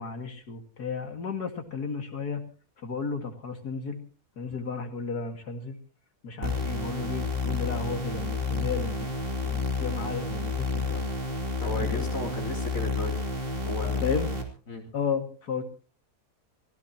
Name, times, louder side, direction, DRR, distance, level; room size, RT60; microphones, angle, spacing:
voice 1, 0.0-2.4 2.8-4.0 4.4-5.8 6.2-9.1 9.4-11.1 11.8-12.4 14.0-14.3 14.9-15.6, left 5 dB, 70° left, 5 dB, 2.7 m, -33 dB
sound 1, 6.4-14.4, left 3 dB, 35° right, 3.0 m, -30 dB
voice 2, 11.6-13.2 13.6-14.1 14.7-14.8, left 1 dB, 55° left, 1 dB, 4.1 m, -34 dB
25.5 x 16.5 x 3.0 m, 0.38 s
omnidirectional pair, 1.7 m